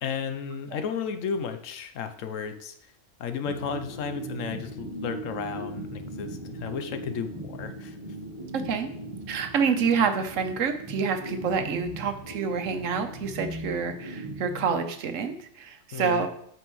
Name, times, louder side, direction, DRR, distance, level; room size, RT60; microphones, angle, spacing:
voice 1, 0.0-2.7 3.2-8.0 15.9-16.3, left 6 dB, 85° left, 9 dB, 1.1 m, -33 dB
sound 1, 3.4-15.3, right 1 dB, 25° right, 1.3 m, -39 dB
voice 2, 8.5-8.9 9.3-16.3, right 6 dB, 80° right, 7 dB, 1.2 m, -27 dB
8.7 x 5.9 x 3.1 m, 0.66 s
omnidirectional pair, 1.3 m